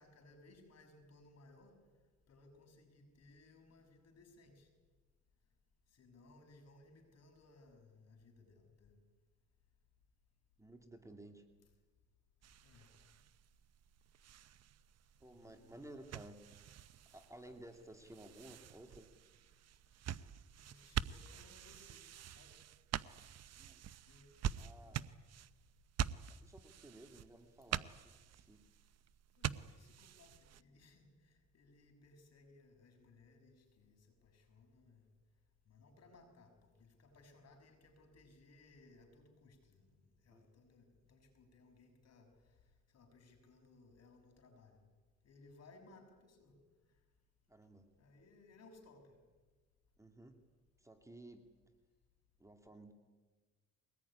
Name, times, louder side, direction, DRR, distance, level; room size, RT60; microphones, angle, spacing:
voice 1, 0.0-1.8 2.3-4.7 5.9-9.0 12.6-12.9 15.3-15.7 20.6-22.0 22.3-22.6 24.1-24.3 24.8-25.0 29.4-35.1 35.7-42.6 42.9-44.8 45.2-46.6 48.0-49.2, left 2 dB, 55° left, 4 dB, 6.4 m, -63 dB
voice 2, 10.6-11.5 15.2-16.5 17.1-19.1 23.5-23.8 24.6-25.0 26.3-28.7 40.3-40.5 47.5-47.9 50.0-50.4 50.8-51.5 52.4-52.9, right 1 dB, 10° right, 5 dB, 2.5 m, -56 dB
sound 1, 12.4-30.6, right 10 dB, 55° right, 0.8 m, -46 dB
23.0 x 19.5 x 10.0 m, 1.3 s
cardioid pair, 90°, 30 cm